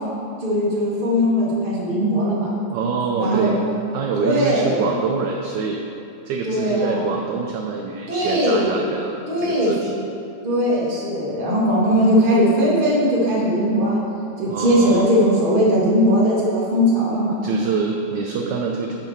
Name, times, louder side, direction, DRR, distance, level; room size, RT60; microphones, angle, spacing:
voice 1, 0.4-2.5 3.2-3.5 4.2-4.9 6.4-7.1 8.1-8.8 9.3-9.7 10.4-14.0 14.4-17.4, equal, 30° right, -6 dB, 1.4 m, -19 dB
voice 2, 2.7-3.6 3.9-5.8 6.2-9.9 14.5-15.1 17.4-18.9, right 5 dB, 75° right, 1 dB, 1.0 m, -25 dB
7.4 x 5.3 x 4.6 m, 2.7 s
omnidirectional pair, 2.3 m